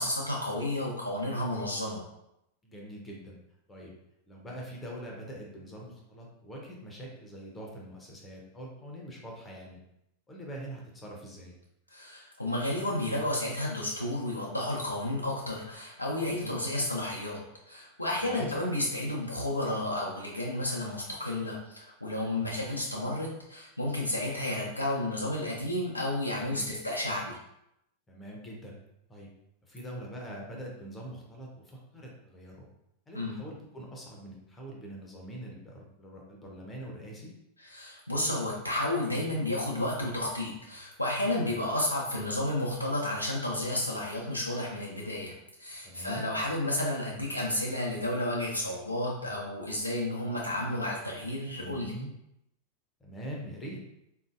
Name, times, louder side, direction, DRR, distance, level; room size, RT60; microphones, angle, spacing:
voice 1, 0.0-2.0 11.9-17.4 17.7-27.4 33.1-33.4 37.6-45.3 45.6-51.9, left 1 dB, 85° left, -3 dB, 0.5 m, -32 dB
voice 2, 2.6-3.4 3.7-4.0 4.3-9.8 10.3-11.5 16.3-16.6 18.2-18.6 22.3-22.5 26.6-26.8 28.1-28.8 29.1-29.3 29.6-32.7 33.1-37.3 45.8-46.3 51.6-52.1 53.0-53.8, right 1 dB, 15° left, -2 dB, 0.7 m, -43 dB
3.6 x 2.6 x 2.4 m, 0.83 s
figure-of-eight pair, 90°, 0 cm